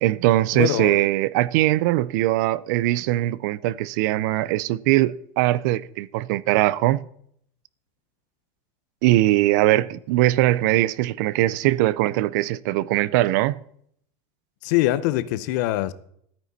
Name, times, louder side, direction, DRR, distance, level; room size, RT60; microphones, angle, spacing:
voice 1, 0.0-7.0 9.0-13.6, right 16 dB, 60° right, 0.5 m, -21 dB
voice 2, 0.5-1.0 14.6-15.9, left 15 dB, 60° left, 0.7 m, -23 dB
13.5 x 9.4 x 4.1 m
supercardioid pair, 170°, 11 cm